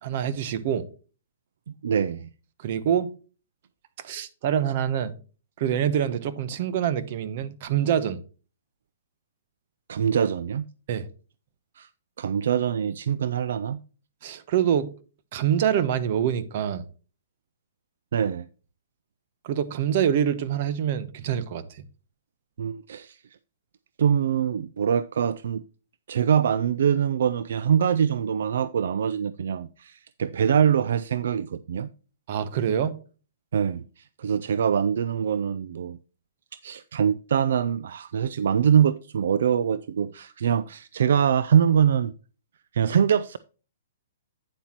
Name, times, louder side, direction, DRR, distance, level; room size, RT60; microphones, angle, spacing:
voice 1, 0.0-0.9 2.6-3.1 4.0-5.1 5.6-8.2 10.9-11.1 14.2-14.9 15.3-16.8 19.4-21.6 32.3-32.9, right 9 dB, 50° right, 0.9 m, -25 dB
voice 2, 1.8-2.3 9.9-10.7 11.8-11.9 12.2-13.8 18.1-18.5 22.6-23.2 24.0-25.6 26.1-31.9 33.5-36.0 36.6-42.1 42.7-43.4, right 8 dB, 70° right, 0.4 m, -24 dB
9.2 x 7.2 x 3.0 m
hypercardioid pair, 145°, 0 cm